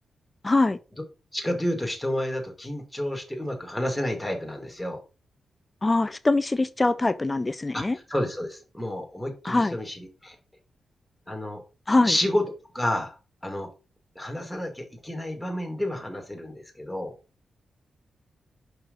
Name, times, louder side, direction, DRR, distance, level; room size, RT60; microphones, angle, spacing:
voice 1, 0.4-0.8 5.8-8.0 9.4-9.8 11.9-12.1, left 2 dB, 20° left, 0.4 m, -23 dB
voice 2, 1.3-5.0 7.7-7.8 8.1-10.4 11.3-11.6 12.0-12.4 12.7-13.1 13.4-13.7 14.2-17.1, left 1 dB, 5° left, 2.2 m, -30 dB
5.8 x 5.6 x 5.3 m
wide cardioid pair, 115°, 0 cm